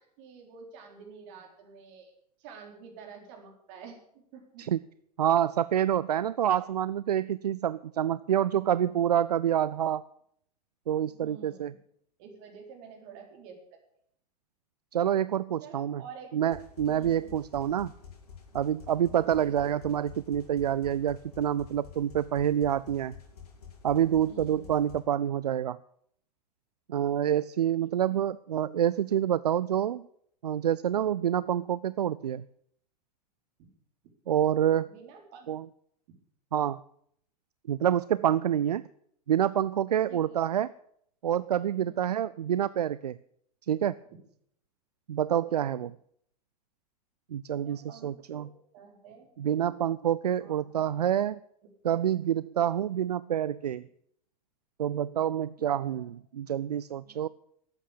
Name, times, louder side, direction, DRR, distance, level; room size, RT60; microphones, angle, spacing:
voice 1, 0.0-2.1 2.4-4.6 11.1-11.8 12.2-13.6 15.6-16.3 16.9-17.3 19.1-19.8 24.2-24.7 27.8-28.1 34.9-35.5 40.1-40.5 41.8-42.1 47.5-48.5 48.7-49.3 50.4-50.7 55.6-56.1 57.0-57.3, right 6 dB, 50° right, 2 dB, 4.1 m, -49 dB
voice 2, 5.2-10.0 10.9-11.7 14.9-16.0 16.3-17.9 18.5-23.1 23.8-25.8 26.9-30.1 30.4-32.4 34.3-34.9 35.5-35.7 36.5-36.8 37.7-38.8 39.3-40.7 41.2-43.2 43.7-44.0 45.1-45.9 47.3-48.5 49.4-51.4 51.8-53.8 54.8-57.3, right 10 dB, 75° right, 17 dB, 0.4 m, -27 dB
sound 1, 16.5-25.0, left 6 dB, 70° left, 2.9 m, -49 dB
13.0 x 8.2 x 8.7 m, 0.69 s
figure-of-eight pair, 90°, 20 cm